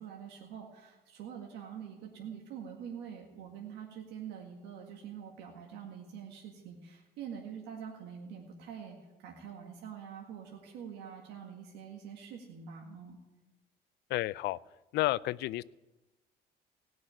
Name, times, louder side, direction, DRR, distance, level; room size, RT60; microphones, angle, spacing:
voice 1, 0.0-13.2, right 8 dB, 90° right, 0 dB, 1.9 m, -45 dB
voice 2, 14.1-14.6 14.9-15.6, left 17 dB, 80° left, 20 dB, 0.4 m, -31 dB
18.0 x 6.3 x 9.9 m, 1.1 s
cardioid pair, 110°, 17 cm